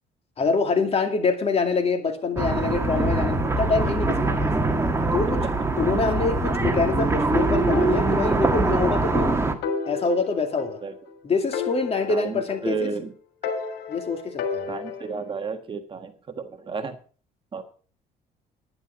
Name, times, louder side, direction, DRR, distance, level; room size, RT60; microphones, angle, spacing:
voice 1, 0.4-4.5 5.1-5.4 5.8-9.5 9.9-10.8 11.2-12.8 13.9-14.7, left 4 dB, 35° left, 5 dB, 2.4 m, -25 dB
sound 1, 2.4-9.5, right 2 dB, 15° right, 1.7 m, -23 dB
sound 2, 7.7-8.9 9.2-9.3 9.6-11.1 11.5-13.0 13.4-15.3, left 5 dB, 85° left, 3.1 m, -32 dB
voice 2, 12.1-13.1 14.7-17.0 17.5-17.6, right 5 dB, 30° right, 7 dB, 1.5 m, -32 dB
11.0 x 10.5 x 5.1 m, 0.40 s
cardioid pair, 110°, 17 cm